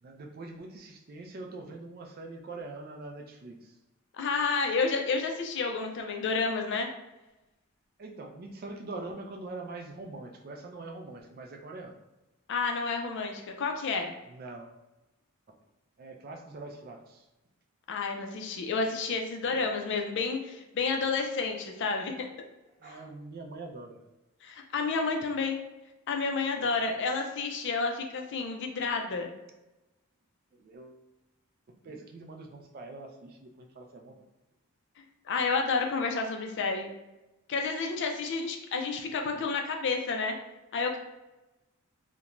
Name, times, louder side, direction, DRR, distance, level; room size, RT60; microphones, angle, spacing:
voice 1, 0.0-3.8 8.0-12.0 14.3-14.8 16.0-17.3 19.5-19.7 22.8-24.0 26.6-26.9 30.5-31.0 31.7-34.3 39.3-39.5, right 2 dB, 40° right, 4 dB, 0.3 m, -43 dB
voice 2, 4.1-6.9 12.5-14.1 17.9-22.3 24.4-25.6 26.1-29.3 35.3-36.9 37.5-40.3 40.7-41.0, left 4 dB, 50° left, 3 dB, 0.4 m, -30 dB
2.5 x 2.1 x 2.9 m, 1.0 s
head